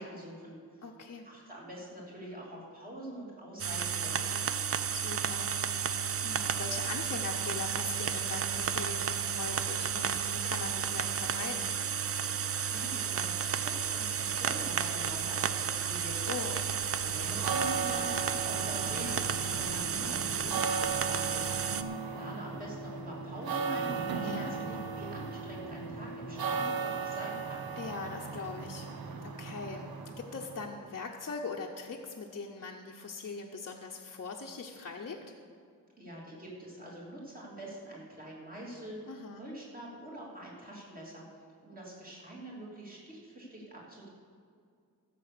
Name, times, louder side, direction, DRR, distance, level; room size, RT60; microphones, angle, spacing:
voice 1, 0.0-0.8 1.2-4.6 12.6-16.2 16.9-21.4 22.1-27.7 36.0-41.2 41.6-44.1, right 1 dB, 25° right, -4 dB, 3.0 m, -45 dB
voice 2, 0.8-1.3 4.9-5.5 5.8-11.7 16.3-16.6 24.2-24.6 27.8-28.9 29.2-35.2 39.1-39.4, left 4 dB, 45° left, -1 dB, 0.8 m, -41 dB
sound 1, 3.6-21.8, right 7 dB, 40° right, 0.4 m, -32 dB
sound 2, 17.2-30.7, right 5 dB, 75° right, 1.0 m, -37 dB
15.0 x 6.8 x 6.8 m, 2.2 s
wide cardioid pair, 150°, 36 cm